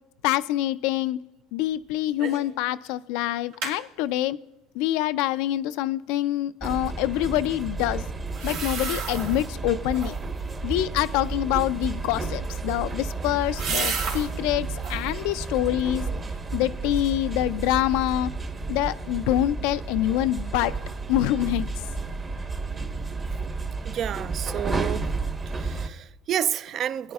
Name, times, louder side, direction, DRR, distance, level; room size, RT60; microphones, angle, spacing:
voice 1, 0.2-1.2 1.5-4.4 4.7-8.1 8.4-10.2 10.6-16.1 16.5-18.3 18.7-20.7 21.1-21.7, left 14 dB, 75° left, 0.3 m, -25 dB
sound 1, 2.2-2.5 2.8-2.9 3.3-3.8 8.3-9.5 9.9-10.4 12.4-14.3 14.7-15.1 15.6-16.3 16.6-16.7, right 5 dB, 85° right, 2.6 m, -33 dB
sound 2, 6.6-25.9, right 3 dB, 25° right, 1.0 m, -32 dB
voice 2, 23.8-25.2 25.5-27.1, right 10 dB, 45° right, 0.3 m, -30 dB
19.5 x 10.0 x 2.3 m
supercardioid pair, 105°, 0 cm